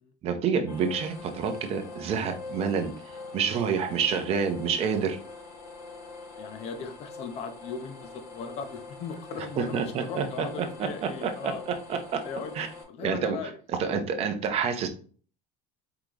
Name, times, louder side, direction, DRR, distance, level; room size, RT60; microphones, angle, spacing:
voice 1, 0.2-2.9 3.3-5.2 9.6-11.5 11.9-12.2 12.6-12.7 13.0-13.4 13.8-14.9, right 6 dB, 30° right, 6 dB, 0.7 m, -28 dB
sound 1, 0.7-12.8, left 3 dB, 75° left, 1.9 m, -44 dB
voice 2, 6.4-11.7 12.2-12.5 12.9-13.5, left 5 dB, 30° left, 7 dB, 0.5 m, -38 dB
4.7 x 2.9 x 3.8 m, 0.42 s
cardioid pair, 175°, 20 cm